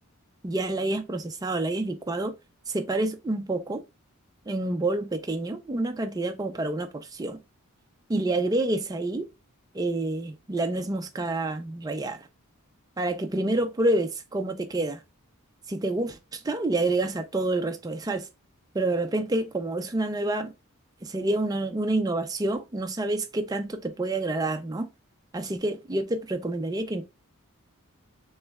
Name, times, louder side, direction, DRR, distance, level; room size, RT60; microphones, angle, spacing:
voice 1, 0.4-2.3 2.7-3.8 4.5-7.4 8.1-9.3 9.7-12.2 13.0-15.0 15.7-18.2 18.7-20.5 21.0-24.9 25.3-27.0, right 2 dB, 15° right, 0.4 m, -28 dB
3.3 x 3.1 x 3.4 m
head